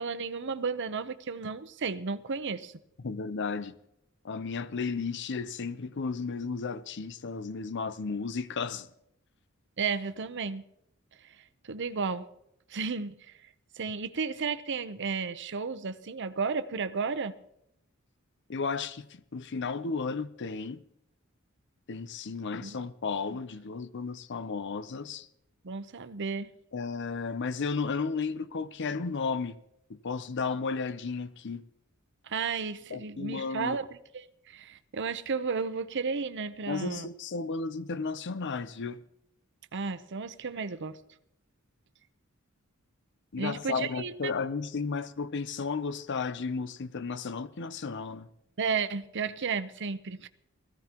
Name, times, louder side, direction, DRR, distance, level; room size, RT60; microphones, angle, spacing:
voice 1, 0.0-2.7 9.8-10.6 11.4-12.2 12.7-13.1 13.7-17.3 22.6-22.8 25.6-26.5 32.2-33.9 34.1-37.1 39.7-41.0 43.4-44.3 48.6-50.3, right 5 dB, 55° right, 0.7 m, -33 dB
voice 2, 3.0-3.7 4.2-8.9 18.5-20.8 21.9-25.3 26.7-29.6 29.9-31.6 32.9-33.8 36.7-39.0 43.3-48.3, left 4 dB, 55° left, 0.6 m, -33 dB
20.0 x 15.0 x 3.0 m
head